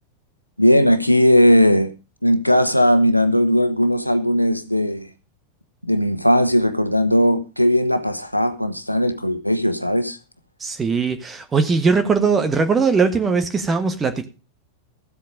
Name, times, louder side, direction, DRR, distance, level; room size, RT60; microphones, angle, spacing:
voice 1, 0.6-1.9 2.2-5.1 5.8-10.2, equal, 90° left, 1.2 m, -17 dB
voice 2, 10.6-14.3, right 5 dB, 20° right, 1.4 m, -20 dB
14.5 x 8.3 x 5.1 m
figure-of-eight pair, 90°, 0 cm